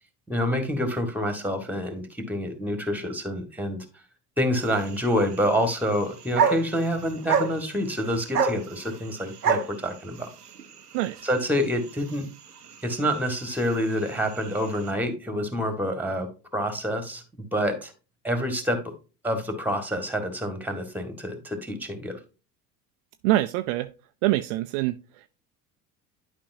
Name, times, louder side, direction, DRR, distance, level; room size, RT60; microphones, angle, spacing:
voice 1, 0.3-3.9 4.4-10.3 11.2-12.3 12.8-16.3 16.5-17.2 17.5-17.9 18.2-18.8 19.2-22.2, equal, 5° right, 1.8 m, -27 dB
sound 1, 4.6-14.9, right 6 dB, 85° right, 0.7 m, -31 dB
voice 2, 10.9-11.2 23.2-23.9 24.2-24.9, right 16 dB, 50° right, 0.5 m, -24 dB
11.5 x 5.2 x 2.7 m
figure-of-eight pair, 65°, 46 cm